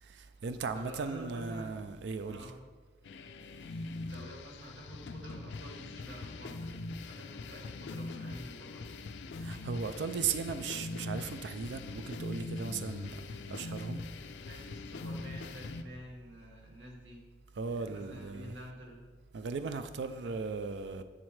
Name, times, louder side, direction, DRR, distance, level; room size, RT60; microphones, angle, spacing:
voice 1, 0.0-2.5 9.4-14.0 17.5-18.6 19.3-21.0, right 5 dB, 75° right, 0.4 m, -37 dB
voice 2, 0.7-1.7 2.2-2.5 4.1-6.7 7.1-8.8 14.4-17.2 17.8-19.0, equal, 90° right, 1.8 m, -48 dB
sound 1, 3.0-15.8, left 3 dB, 70° left, 0.4 m, -42 dB
7.5 x 7.0 x 3.2 m
head